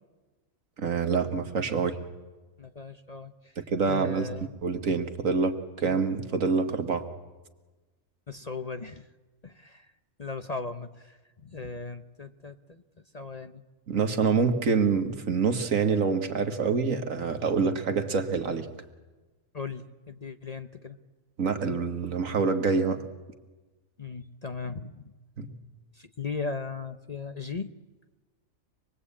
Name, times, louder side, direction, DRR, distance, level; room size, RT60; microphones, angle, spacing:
voice 1, 0.8-2.0 3.6-4.3 4.6-7.1 13.9-18.7 21.4-23.0 25.4-25.5, right 5 dB, 75° right, 8 dB, 1.9 m, -26 dB
voice 2, 2.6-3.6 3.9-4.5 8.3-9.1 9.4-9.9 10.2-12.8 13.1-13.6 19.5-21.0 24.0-25.1 25.9-27.7, left 4 dB, 35° left, 9 dB, 0.8 m, -37 dB
26.0 x 20.5 x 8.6 m, 1.2 s
omnidirectional pair, 1.4 m